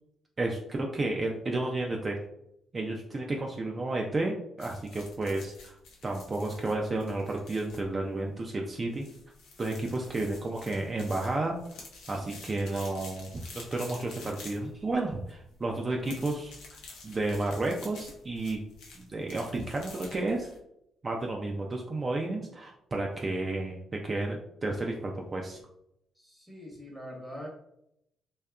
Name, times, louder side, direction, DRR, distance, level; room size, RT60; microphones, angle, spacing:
voice 1, 0.4-2.2 2.7-5.8 6.0-9.1 9.6-11.6 12.1-16.5 17.0-18.6 19.0-20.5 21.0-23.8 24.0-25.6, right 2 dB, 30° right, 1 dB, 0.3 m, -32 dB
sound 1, 4.6-20.6, left 3 dB, 85° left, 0.6 m, -50 dB
voice 2, 12.0-12.4 26.2-27.5, equal, 10° left, -2 dB, 0.9 m, -44 dB
2.6 x 2.3 x 2.3 m, 0.78 s
cardioid pair, 90°, 0 cm